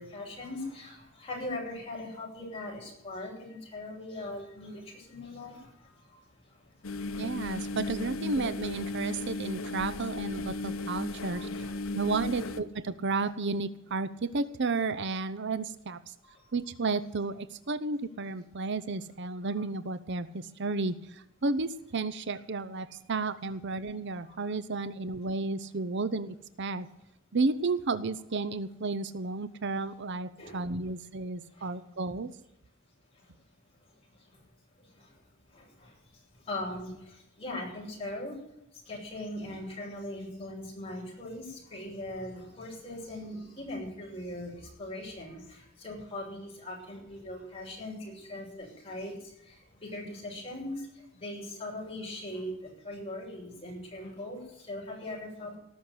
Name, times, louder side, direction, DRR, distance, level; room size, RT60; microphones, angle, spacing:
voice 1, 0.0-7.2 7.6-7.7 11.1-11.8 16.2-16.5 30.4-30.6 31.5-31.7 33.1-33.3 33.9-34.4 34.8-35.2 35.5-38.4 38.7-55.6, left 1 dB, 30° left, -3 dB, 7.0 m, -41 dB
sound 1, 6.8-12.6, left 2 dB, 80° left, 1.0 m, -35 dB
voice 2, 7.2-11.5 11.9-16.1 16.5-26.9 27.3-32.3, right 3 dB, 60° right, 14 dB, 0.7 m, -32 dB
18.5 x 6.5 x 9.4 m, 0.83 s
head